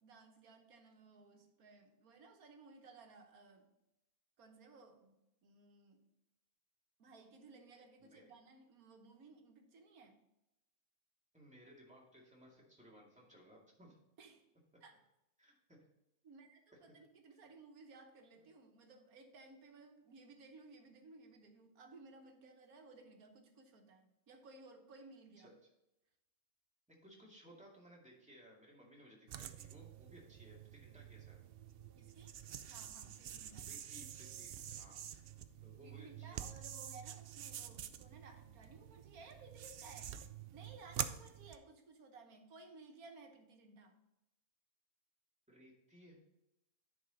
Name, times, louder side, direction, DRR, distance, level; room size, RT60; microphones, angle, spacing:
voice 1, 0.0-3.7 4.4-5.2 5.4-6.0 7.0-10.2 14.2-14.4 14.8-14.9 16.2-25.5 32.0-32.4 32.7-33.7 35.8-40.2 40.5-44.0, right 3 dB, 85° right, 4 dB, 1.6 m, -58 dB
voice 2, 8.0-8.3 11.3-14.0 15.4-15.8 18.4-18.5 25.4-25.7 27.0-31.4 33.7-35.3 35.6-36.4 45.5-46.2, equal, 5° right, -3 dB, 2.1 m, -60 dB
sound 1, 29.3-41.6, right 10 dB, 70° right, 0.5 m, -48 dB
9.7 x 5.3 x 4.0 m, 0.90 s
omnidirectional pair, 1.5 m